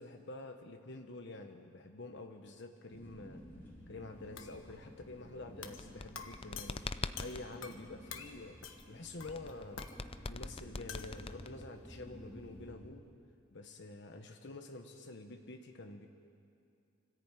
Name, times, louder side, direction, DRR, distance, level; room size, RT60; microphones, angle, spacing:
voice 1, 0.0-3.4 3.9-6.8 7.2-8.6 8.9-9.9 10.3-13.0 13.5-16.1, left 2 dB, 65° left, 5 dB, 1.2 m, -48 dB
sound 1, 2.9-12.9, equal, 10° left, 3.6 m, -54 dB
sound 2, 4.4-4.6 5.6-5.9 6.2-7.9 8.1-8.3 8.6-8.9 9.2-10.0 10.9-11.2, left 7 dB, 85° left, 1.4 m, -48 dB
sound 3, 5.7-7.5 9.3-11.8, left 3 dB, 30° left, 0.5 m, -42 dB
25.0 x 14.0 x 9.1 m, 2.5 s
head